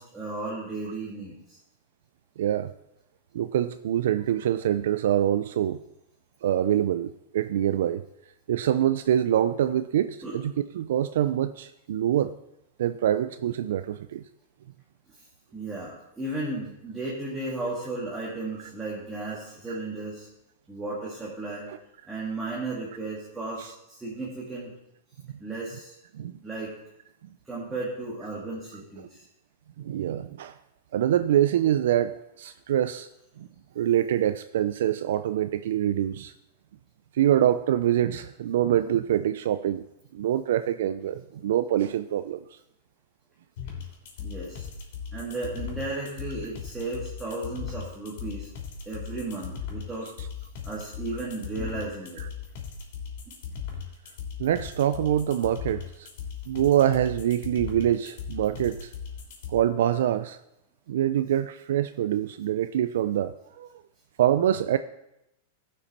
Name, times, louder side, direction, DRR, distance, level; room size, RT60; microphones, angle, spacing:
voice 1, 0.0-1.6 10.2-10.4 15.5-20.3 20.7-21.7 22.1-24.7 25.4-26.0 26.4-26.7 27.5-29.2 44.2-44.7 45.1-48.5 48.9-50.1 50.6-52.2 53.3-53.4, right 2 dB, 10° right, -6 dB, 1.8 m, -34 dB
voice 2, 2.4-2.7 3.3-5.8 6.4-8.0 8.5-12.3 12.8-14.3 18.6-18.7 19.7-19.8 23.6-23.7 25.3-25.4 26.1-26.3 29.0-29.1 29.8-30.6 30.9-33.1 33.4-33.5 33.7-36.3 37.1-39.8 40.1-42.6 50.2-50.3 52.2-52.3 54.4-56.1 56.5-58.9 59.5-60.4 60.9-63.7 64.2-64.8, right 11 dB, 75° right, 11 dB, 0.4 m, -25 dB
sound 1, 43.6-59.6, left 7 dB, 65° left, 3.1 m, -37 dB
14.5 x 6.0 x 4.1 m, 0.85 s
supercardioid pair, 155°, 0 cm